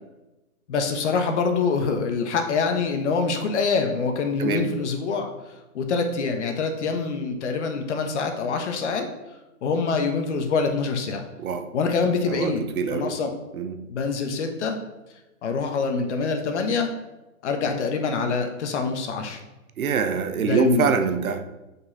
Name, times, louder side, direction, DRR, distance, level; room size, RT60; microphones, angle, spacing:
voice 1, 0.7-5.3 5.7-9.1 9.6-11.2 11.7-13.4 13.8-14.8 15.4-16.9 17.4-19.4 20.4-20.9, left 4 dB, 55° left, 5 dB, 1.2 m, -25 dB
voice 2, 12.3-13.1 13.5-13.8 19.8-21.4, right 6 dB, 75° right, 8 dB, 1.0 m, -25 dB
6.7 x 5.5 x 4.2 m, 1.0 s
hypercardioid pair, 145°, 43 cm